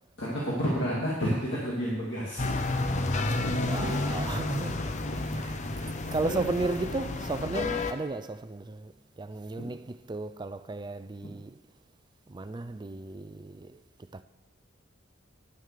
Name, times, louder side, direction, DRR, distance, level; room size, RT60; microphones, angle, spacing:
voice 1, 0.2-2.5 5.8-5.9 6.2-6.5 9.6-9.7, equal, 60° left, 2.2 m, -30 dB
sound 1, 2.4-7.9, left 2 dB, 35° left, 0.7 m, -31 dB
voice 2, 3.5-11.6 12.3-13.8 14.1-14.2, right 3 dB, 20° right, 0.4 m, -35 dB
10.5 x 6.5 x 6.6 m
head